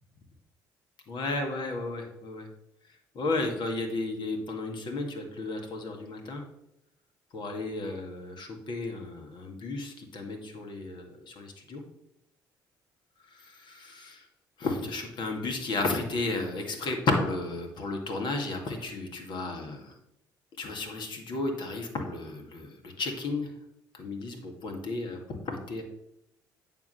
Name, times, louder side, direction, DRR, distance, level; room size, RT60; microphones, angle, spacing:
voice 1, 1.1-2.5 3.2-6.4 7.3-11.8 13.3-14.2 14.6-19.9 20.6-23.5 23.9-25.8, left 2 dB, 60° left, 3 dB, 1.9 m, -33 dB
9.2 x 3.8 x 6.4 m, 0.84 s
hypercardioid pair, 60°, 9 cm